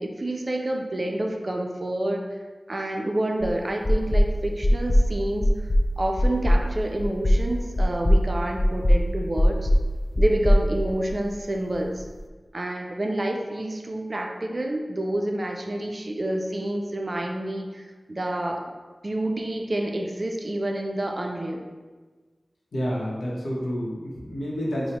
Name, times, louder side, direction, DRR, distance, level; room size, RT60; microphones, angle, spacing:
voice 1, 0.0-2.2 2.7-5.5 6.0-9.7 10.2-12.0 12.5-18.6 19.0-21.6, right 1 dB, 50° right, 2 dB, 0.3 m, -28 dB
sound 1, 3.4-3.5 3.8-4.3 4.6-5.1 5.4-5.9 6.2-6.6 7.0-7.4 7.8-8.2 8.6-9.0 9.4-9.8 10.1-11.4, equal, 40° left, 0.3 m, -19 dB
voice 2, 22.7-25.0, equal, 90° left, -4 dB, 0.7 m, -29 dB
4.3 x 2.0 x 2.9 m, 1.4 s
cardioid pair, 45°, 0 cm